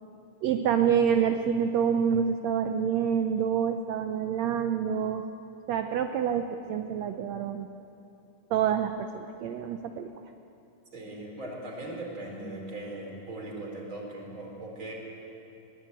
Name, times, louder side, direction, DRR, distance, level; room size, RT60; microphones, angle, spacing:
voice 1, 0.4-5.2 5.7-7.7 8.5-10.1, right 8 dB, 70° right, 6 dB, 1.8 m, -27 dB
voice 2, 10.9-14.9, right 1 dB, 40° right, 0 dB, 5.1 m, -39 dB
23.0 x 19.5 x 9.1 m, 2.9 s
omnidirectional pair, 3.6 m